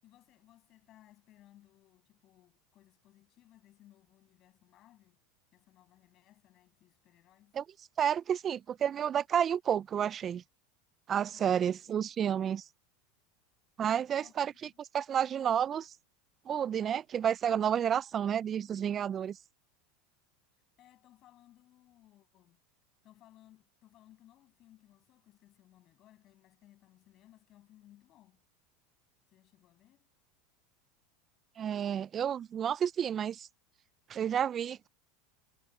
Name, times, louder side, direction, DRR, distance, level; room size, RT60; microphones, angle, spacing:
voice 1, 0.0-5.2 5.5-7.6 11.3-12.5 14.2-14.8 20.8-22.6 23.0-28.4 29.3-30.1, left 14 dB, 45° left, 7.1 m, -62 dB
voice 2, 8.0-10.4 11.1-12.6 13.8-14.5 14.8-15.9 16.5-19.4 31.6-33.5 34.1-34.9, right 9 dB, 35° right, 0.4 m, -30 dB
hypercardioid pair, 100°, 0 cm